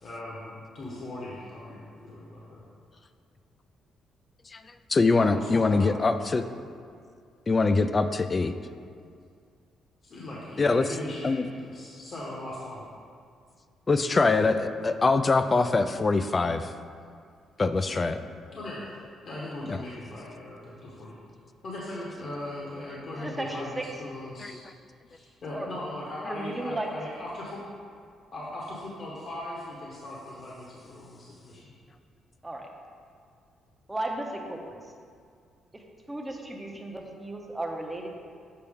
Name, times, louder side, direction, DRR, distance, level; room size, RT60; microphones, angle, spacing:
voice 1, 0.0-2.6 5.1-5.9 10.0-12.8 18.5-19.0 19.2-21.1 21.6-24.7 25.1-27.6 28.3-31.7, left 1 dB, 50° left, -5 dB, 1.0 m, -39 dB
voice 2, 4.9-6.5 7.5-8.5 10.6-10.8 11.2-11.4 13.9-16.7 17.6-18.2 19.7-19.8 24.4-24.5, left 3 dB, 30° left, 10 dB, 0.3 m, -23 dB
voice 3, 23.1-23.9 25.5-25.7 26.2-26.9 32.4-32.7 33.9-34.7 35.7-35.8 36.1-38.1, right 1 dB, 10° right, 1 dB, 0.8 m, -35 dB
6.8 x 4.4 x 3.5 m, 2.2 s
cardioid pair, 90°, 0 cm